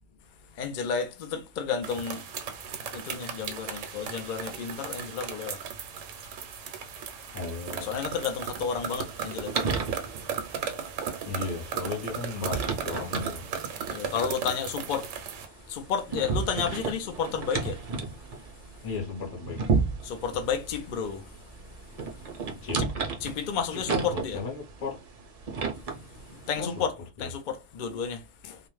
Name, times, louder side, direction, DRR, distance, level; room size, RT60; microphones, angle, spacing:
voice 1, 0.6-2.2 2.9-5.6 7.8-9.7 13.9-15.1 15.7-17.8 20.0-21.3 22.8-22.9 23.2-24.4 26.5-26.9 27.2-28.6, left 6 dB, 65° left, 0.5 m, -31 dB
sound 1, 1.8-15.5, right 7 dB, 80° right, 0.9 m, -36 dB
voice 2, 7.3-8.0 11.2-13.4 18.8-19.6 22.6-22.8 23.7-25.0 26.6-26.7 27.2-27.3, left 4 dB, 35° left, 0.8 m, -35 dB
sound 2, 8.6-26.9, right 4 dB, 50° right, 0.4 m, -34 dB
2.4 x 2.1 x 3.0 m
omnidirectional pair, 1.3 m